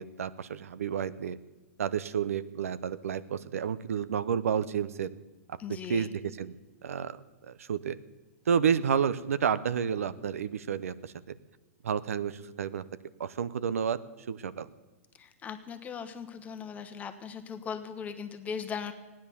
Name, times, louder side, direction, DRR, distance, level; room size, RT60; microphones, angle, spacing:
voice 1, 0.0-1.4 1.8-5.1 5.5-5.6 5.9-6.6 6.8-7.2 7.5-8.0 8.5-11.4 11.8-12.8 13.2-14.0 14.3-14.7, right 7 dB, 85° right, 15 dB, 0.7 m, -30 dB
voice 2, 5.6-6.1 15.2-18.9, left 6 dB, 20° left, 8 dB, 1.2 m, -39 dB
16.0 x 10.0 x 7.0 m, 1.2 s
hypercardioid pair, 135°, 8 cm